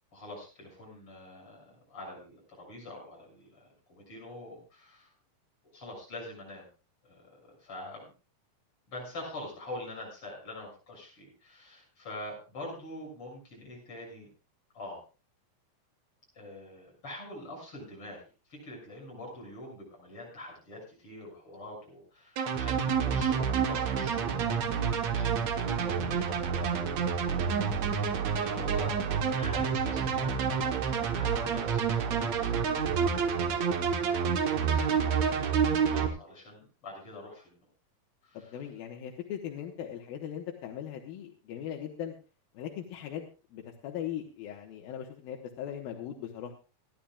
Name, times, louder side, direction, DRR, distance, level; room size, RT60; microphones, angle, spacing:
voice 1, 0.1-5.1 5.7-6.7 7.0-8.1 8.9-14.3 14.7-15.0 16.3-18.2 18.5-29.0 29.3-30.7 31.1-32.5 33.5-34.3 34.7-37.6 38.2-38.6, left 1 dB, 35° left, -1 dB, 7.4 m, -45 dB
sound 1, 22.4-36.1, right 6 dB, 60° right, 2.1 m, -28 dB
voice 2, 38.3-42.1 42.5-46.5, left 10 dB, 85° left, 1 dB, 3.1 m, -39 dB
27.5 x 10.5 x 2.4 m, 0.33 s
omnidirectional pair, 4.2 m